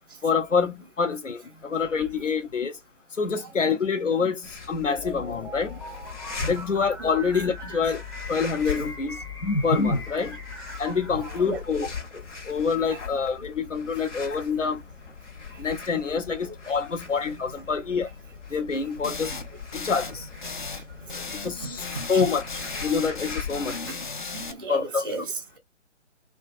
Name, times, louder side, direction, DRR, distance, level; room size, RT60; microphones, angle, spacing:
voice 1, 0.2-2.7 3.2-5.7 6.5-8.0 8.3-10.4 10.8-11.9 12.5-14.8 15.6-18.1 18.5-19.3 19.8-20.2 21.4-23.8 24.7-25.1, left 5 dB, 85° left, 0.6 m, -26 dB
sound 1, 4.4-23.8, left 5 dB, 70° left, 1.0 m, -41 dB
sound 2, 4.9-11.6, left 2 dB, 15° left, 0.7 m, -40 dB
sound 3, 19.0-19.5 19.7-20.1 20.4-20.8 21.1-21.5 21.8-24.5, left 4 dB, 45° left, 0.4 m, -35 dB
voice 2, 24.3-25.6, right 3 dB, 20° right, 0.5 m, -35 dB
2.7 x 2.3 x 2.4 m
figure-of-eight pair, 140°, 36 cm